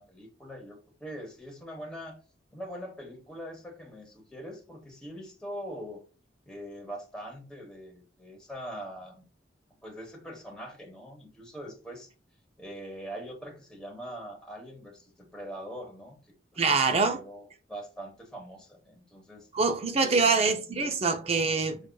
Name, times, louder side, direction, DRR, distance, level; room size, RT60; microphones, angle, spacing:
voice 1, 0.0-2.2 2.5-6.0 6.4-9.3 9.8-12.1 12.6-16.2 16.5-19.5 20.0-20.5 21.8-21.9, equal, 5° left, 1.0 m, -43 dB
voice 2, 16.6-17.2 19.5-21.8, right 4 dB, 35° right, 0.5 m, -25 dB
6.1 x 2.4 x 2.2 m
head